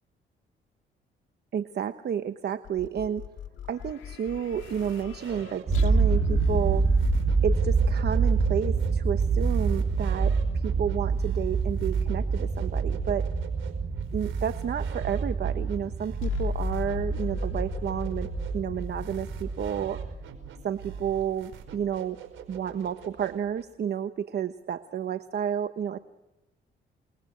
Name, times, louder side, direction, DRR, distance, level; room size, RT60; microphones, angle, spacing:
voice 1, 1.5-3.2 3.7-6.9 7.4-13.3 14.1-20.0 20.6-22.2 22.5-26.0, right 8 dB, 55° right, 10 dB, 1.2 m, -31 dB
sound 1, 2.6-10.0 16.2-20.3, left 10 dB, 80° left, 1.9 m, -35 dB
sound 2, 4.4-23.6, right 7 dB, 80° right, 5.0 m, -45 dB
sound 3, 5.7-20.2, right 5 dB, 40° right, 2.5 m, -27 dB
28.5 x 21.5 x 6.4 m, 0.95 s
cardioid pair, 90°, 20 cm